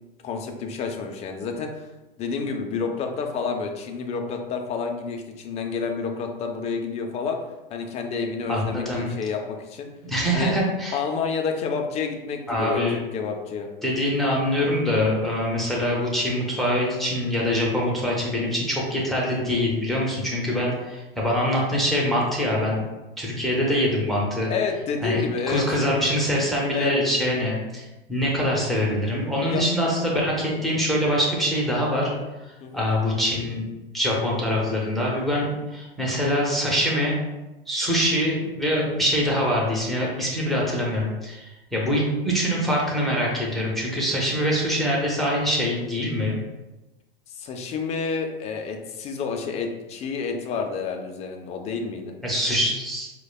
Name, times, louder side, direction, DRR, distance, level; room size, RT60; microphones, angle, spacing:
voice 1, 0.2-1.9 2.2-7.4 7.7-9.9 10.3-10.6 10.9-13.7 24.5-25.7 26.7-27.0 29.4-29.7 32.6-32.9 47.3-52.1, left 5 dB, 25° left, 3 dB, 0.4 m, -29 dB
voice 2, 8.5-9.1 10.0-11.0 12.5-13.0 13.8-22.8 23.2-24.5 25.0-25.2 25.5-27.8 28.1-32.1 32.4-33.6 33.9-37.2 37.7-46.4 52.2-53.1, equal, ahead, -4 dB, 0.8 m, -24 dB
4.6 x 2.2 x 2.3 m, 1.0 s
hypercardioid pair, 100°, 29 cm